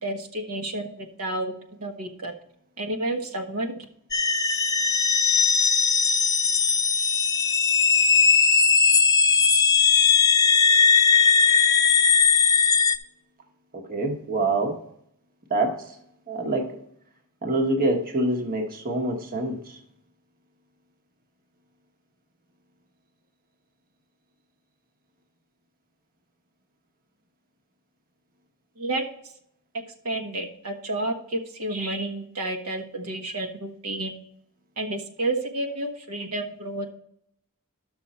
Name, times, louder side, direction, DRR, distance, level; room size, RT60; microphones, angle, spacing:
voice 1, 0.0-1.5 1.8-2.3 2.8-3.7 28.8-29.0 29.7-34.2 34.8-36.9, right 2 dB, 75° right, 2 dB, 1.4 m, -30 dB
sound 1, 4.1-13.0, left 5 dB, 15° left, 0.5 m, -19 dB
voice 2, 13.7-14.8 15.5-16.0 16.3-16.8 17.4-19.8, right 2 dB, 40° right, 3 dB, 1.3 m, -26 dB
11.5 x 6.4 x 4.3 m, 0.69 s
head